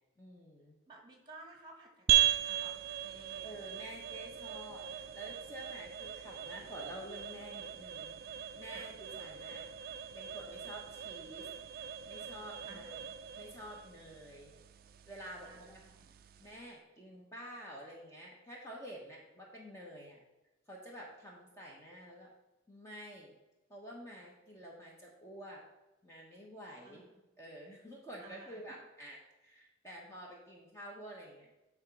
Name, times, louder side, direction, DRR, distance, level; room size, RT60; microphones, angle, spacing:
voice 1, 0.2-0.7 3.4-9.6 10.1-11.5 12.0-13.0 13.4-14.5 15.1-15.8 16.4-20.2 20.7-22.3 22.7-23.4 23.7-25.6 26.0-27.1 27.4-31.5, equal, 15° left, -2 dB, 1.1 m, -49 dB
voice 2, 0.9-3.5 8.7-8.9 12.7-13.1 15.4-16.1 26.8-27.3 28.2-28.7, right 2 dB, 25° right, 2 dB, 1.4 m, -55 dB
sound 1, 2.1-16.7, right 12 dB, 50° right, 0.3 m, -38 dB
8.8 x 3.6 x 5.3 m, 1.0 s
head